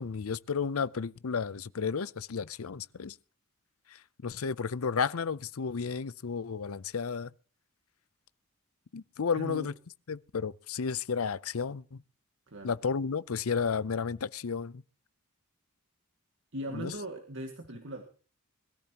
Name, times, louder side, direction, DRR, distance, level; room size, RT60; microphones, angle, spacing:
voice 1, 0.0-3.2 3.9-7.3 8.9-9.7 10.1-12.0 12.6-14.8 16.7-16.9, left 5 dB, 70° left, 0.6 m, -32 dB
voice 2, 9.3-9.7 12.5-12.8 16.5-18.0, right 1 dB, 55° right, 2.0 m, -39 dB
21.5 x 14.0 x 2.9 m
head